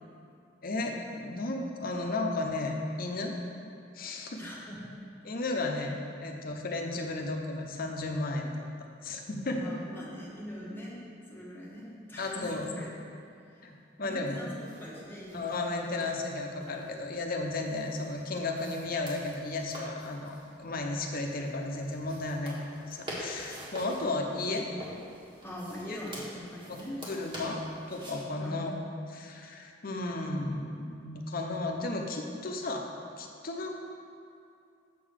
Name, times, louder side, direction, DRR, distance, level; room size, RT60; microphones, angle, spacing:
voice 1, 0.6-3.4 3.9-4.4 5.2-8.5 9.0-9.8 12.2-12.7 13.6-14.4 15.3-22.6 22.9-24.7 25.9-26.0 26.7-26.8 27.1-32.9 33.2-33.7, left 2 dB, 50° left, 2 dB, 0.8 m, -34 dB
voice 2, 4.4-4.8 9.6-11.0 11.3-13.0 13.5-13.7 14.0-16.1 24.0-24.1 25.4-27.0 28.4-28.9, equal, 10° left, -5 dB, 1.2 m, -42 dB
sound 1, 14.5-28.2, equal, 25° right, 1.6 m, -47 dB
7.6 x 4.0 x 6.3 m, 2.5 s
head